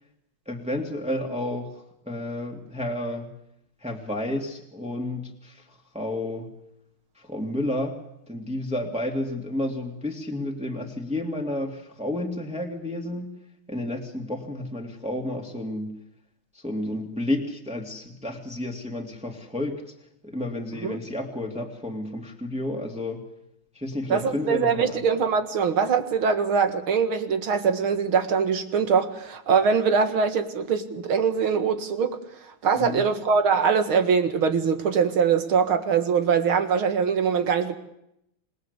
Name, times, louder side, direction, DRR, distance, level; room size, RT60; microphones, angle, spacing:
voice 1, 0.5-3.3 3.8-6.5 7.2-8.0 8.3-13.3 13.7-15.9 16.5-19.9 20.2-23.2 23.7-25.0 32.7-33.0, left 1 dB, 5° right, 2.5 m, -31 dB
voice 2, 24.1-32.2 32.6-37.8, right 6 dB, 80° right, 2.7 m, -23 dB
27.0 x 20.0 x 8.2 m
omnidirectional pair, 2.2 m